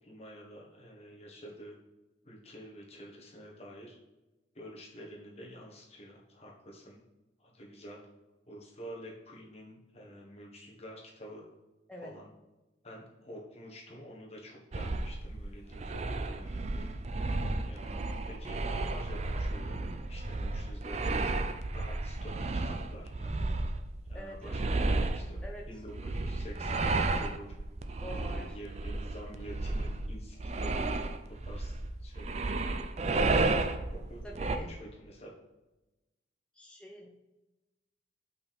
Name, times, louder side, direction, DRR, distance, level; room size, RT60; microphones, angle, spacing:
voice 1, 0.0-1.7 2.2-4.0 4.5-7.0 7.4-8.0 8.4-11.5 12.0-12.3 12.8-16.9 17.6-21.3 21.7-23.5 24.0-27.5 28.1-32.4 33.2-34.2 34.6-35.3, equal, 35° left, -2 dB, 1.4 m, -48 dB
sound 1, 14.7-34.6, right 2 dB, 35° right, 0.4 m, -33 dB
voice 2, 24.1-24.5 25.4-25.7 28.0-28.6 34.2-34.8 36.5-37.1, equal, 5° left, -1 dB, 0.7 m, -45 dB
5.5 x 4.5 x 5.8 m, 1.0 s
head